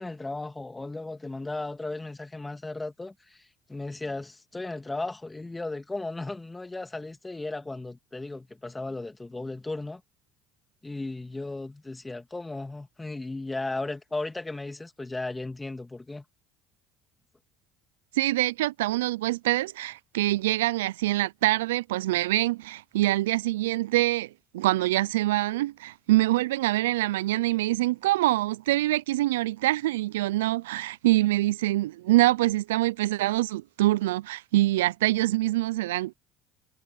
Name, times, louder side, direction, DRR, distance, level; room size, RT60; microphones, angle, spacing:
voice 1, 0.0-10.0 10.8-16.2, left 2 dB, 15° left, 2.7 m, -35 dB
voice 2, 18.2-36.1, right 17 dB, 90° right, 0.3 m, -25 dB
hypercardioid pair, 75°, 0 cm